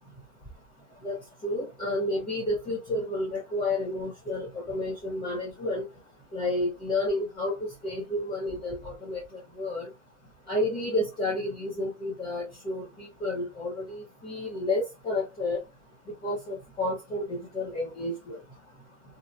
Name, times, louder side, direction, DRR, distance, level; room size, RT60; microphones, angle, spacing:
voice 1, 1.4-5.8 6.3-9.2 9.6-9.9 10.5-15.6 16.2-18.4, left 1 dB, 10° left, 0.5 m, -31 dB
2.7 x 2.0 x 2.3 m
hypercardioid pair, 130°, 42 cm